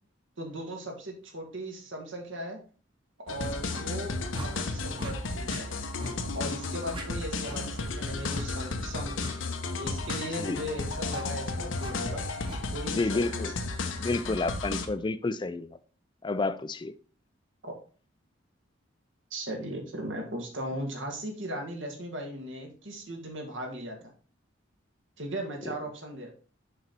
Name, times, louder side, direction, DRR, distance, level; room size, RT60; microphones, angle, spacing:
voice 1, 0.4-2.6 3.3-5.7 6.3-9.3 9.8-12.3 12.6-13.4 17.6-17.8 19.3-24.1 25.2-26.3, right 1 dB, 75° right, 2.0 m, -37 dB
sound 1, 3.3-14.9, left 3 dB, 80° left, 0.9 m, -33 dB
sound 2, 3.7-3.9 4.3-4.5 4.9-5.1 5.5-5.6 6.0-6.2 6.4-6.6 6.9-7.1 7.4-7.6 8.3-8.5 9.2-9.4 10.0-10.2 11.1-11.3 11.8-11.9 12.4-12.6, right 1 dB, 25° right, 1.1 m, -40 dB
voice 2, 12.9-13.5 14.0-15.7 16.2-16.9, left 3 dB, 25° left, 0.4 m, -30 dB
6.6 x 5.4 x 4.5 m
head